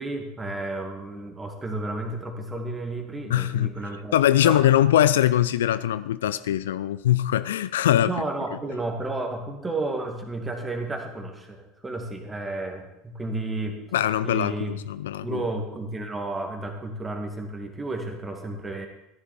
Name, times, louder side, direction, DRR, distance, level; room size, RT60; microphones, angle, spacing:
voice 1, 0.0-4.2 4.4-4.6 8.0-13.8 14.2-14.7 15.2-18.9, right 2 dB, 15° right, 4 dB, 2.2 m, -32 dB
voice 2, 3.3-3.7 4.1-8.1 13.9-15.4, left 12 dB, 65° left, 15 dB, 0.4 m, -22 dB
14.0 x 10.5 x 4.5 m, 0.86 s
figure-of-eight pair, 70°, 0 cm